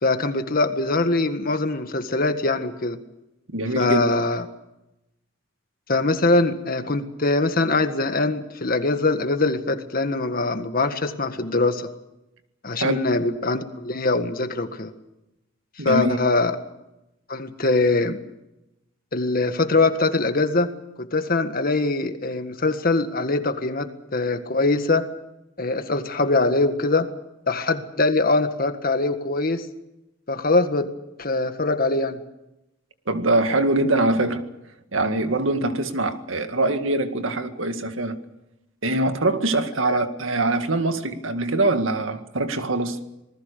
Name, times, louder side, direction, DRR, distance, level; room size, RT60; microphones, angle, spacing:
voice 1, 0.0-3.0 3.8-4.4 5.9-11.9 12.6-14.9 15.8-16.6 17.3-18.2 19.1-20.7 21.0-25.0 25.6-27.1 27.5-29.7 30.3-30.9 31.2-32.2 39.9-40.0, left 2 dB, 45° left, 8 dB, 1.8 m, -22 dB
voice 2, 3.5-4.1 12.8-13.1 15.8-16.2 33.1-34.5 34.9-38.2 38.8-43.0, right 2 dB, 90° right, 8 dB, 2.0 m, -23 dB
26.5 x 20.0 x 6.8 m, 0.91 s
head